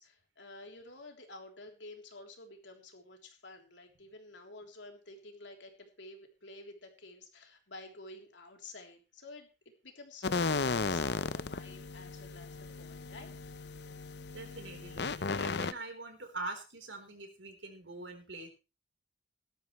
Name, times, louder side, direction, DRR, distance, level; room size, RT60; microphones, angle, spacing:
voice 1, 0.0-9.5 9.8-13.3, left 2 dB, 80° left, 3 dB, 3.4 m, -51 dB
sound 1, 10.2-15.7, left 4 dB, 65° left, 0.7 m, -35 dB
voice 2, 14.3-18.5, right 2 dB, 80° right, 5 dB, 4.0 m, -44 dB
18.0 x 12.5 x 3.2 m, 0.30 s
head